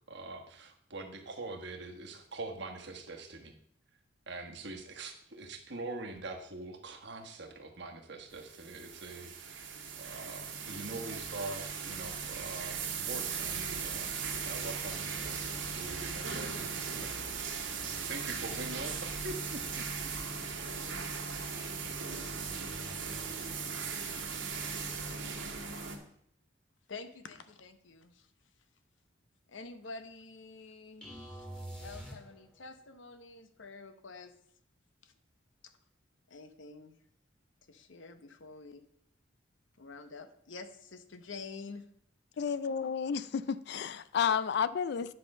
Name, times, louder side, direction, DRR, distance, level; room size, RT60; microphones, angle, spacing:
voice 1, 0.0-3.5 4.3-9.7 10.0-14.1 14.5-17.1 18.1-19.9, right 2 dB, 60° right, 1.3 m, -44 dB
sound 1, 8.3-26.0, right 5 dB, 80° right, 1.8 m, -38 dB
voice 2, 26.9-28.3 29.5-34.3 35.0-35.1 35.6-35.7 36.3-37.0 37.7-38.8 39.8-41.9, left 4 dB, 75° left, 0.9 m, -48 dB
sound 2, 31.0-32.7, right 1 dB, 5° left, 1.8 m, -45 dB
voice 3, 42.4-45.1, left 7 dB, 55° left, 0.4 m, -31 dB
9.9 x 5.6 x 5.4 m
head